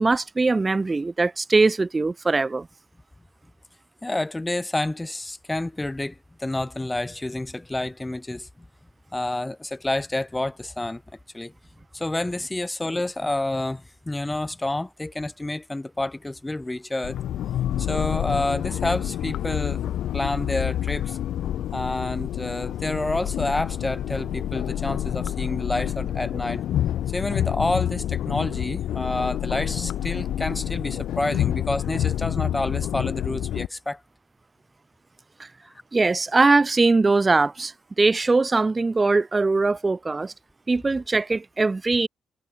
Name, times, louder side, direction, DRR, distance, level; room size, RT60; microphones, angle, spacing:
voice 1, 0.0-2.7 35.4-35.5 35.9-40.3 40.7-42.1, right 3 dB, 25° right, 0.7 m, -21 dB
voice 2, 4.0-8.7 9.1-11.0 11.3-11.5 11.9-17.2 17.8-19.9 20.1-21.2 21.7-26.6 27.1-34.0, left 2 dB, 15° left, 0.6 m, -29 dB
sound 1, 17.0-33.7, left 11 dB, 75° left, 0.8 m, -28 dB
cardioid pair, 90°, 0 cm